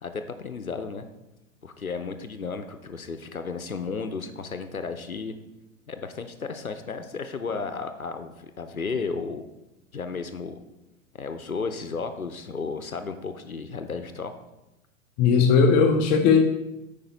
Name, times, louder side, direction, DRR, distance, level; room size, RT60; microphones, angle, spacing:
voice 1, 0.0-1.0 1.6-5.3 5.9-9.4 9.9-10.6 11.1-14.3, left 4 dB, 90° left, 9 dB, 0.7 m, -33 dB
voice 2, 15.2-16.5, left 5 dB, 25° left, 4 dB, 0.5 m, -18 dB
8.7 x 5.2 x 4.1 m, 0.96 s
figure-of-eight pair, 95°, 41 cm